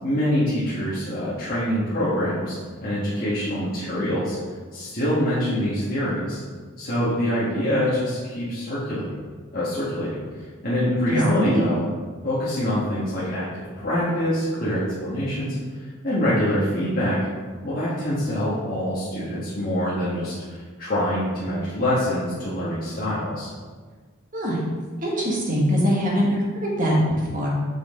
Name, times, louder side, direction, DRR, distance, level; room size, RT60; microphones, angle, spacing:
voice 1, 0.0-2.6 2.8-4.4 4.7-6.4 6.8-9.1 9.5-10.2 10.6-11.9 12.2-15.6 16.0-17.2 17.6-23.5, equal, 45° left, -10 dB, 1.5 m, -25 dB
voice 2, 11.1-11.6 24.3-24.6 25.0-27.5, equal, 40° right, -4 dB, 1.6 m, -23 dB
6.3 x 5.5 x 3.7 m, 1.5 s
head